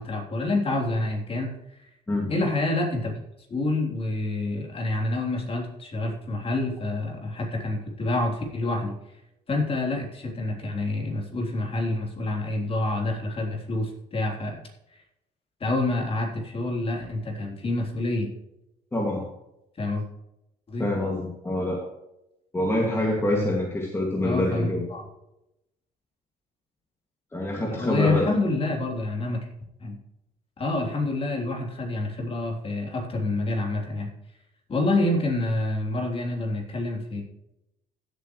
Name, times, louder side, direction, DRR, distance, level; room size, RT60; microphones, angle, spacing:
voice 1, 0.0-1.9 2.3-3.1 3.5-8.9 9.5-14.6 15.6-18.3 19.8-20.1 20.7-20.9 23.3-23.6 24.2-25.0 27.7-29.4 29.8-30.0 30.6-34.1 34.7-37.2, left 2 dB, 35° left, 0 dB, 3.6 m, -27 dB
voice 2, 18.9-19.3 20.8-21.8 22.5-24.8 27.3-28.3, left 1 dB, 15° left, -1 dB, 2.3 m, -26 dB
16.0 x 8.1 x 3.2 m, 0.87 s
cardioid pair, 110°, 17 cm